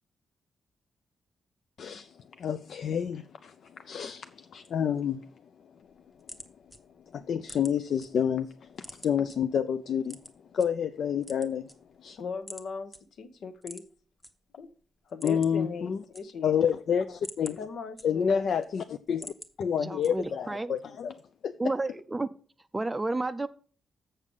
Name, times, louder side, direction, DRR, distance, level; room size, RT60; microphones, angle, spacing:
voice 1, 1.8-5.2 7.1-10.2 10.5-11.7 12.0-12.2 15.2-16.0 16.4-17.6 18.0-21.5, left 8 dB, 60° left, 0.4 m, -29 dB
sound 1, 5.8-8.1 8.4-9.4 10.0-10.7 11.1-12.1 12.5-12.7 12.9-13.0 13.6-14.3 14.6-14.7 15.0-15.7 15.9-16.6 17.0-18.5 18.9-19.5 20.0-20.5, equal, 10° left, 0.9 m, -46 dB
voice 2, 12.2-12.9 13.2-13.8 14.6-14.7 15.1-16.7 17.6-18.5, left 5 dB, 75° left, 1.0 m, -39 dB
voice 3, 19.8-20.7 21.6-22.3 22.7-23.5, right 2 dB, 15° right, 0.4 m, -31 dB
7.3 x 6.7 x 5.3 m
wide cardioid pair, 165°, 0 cm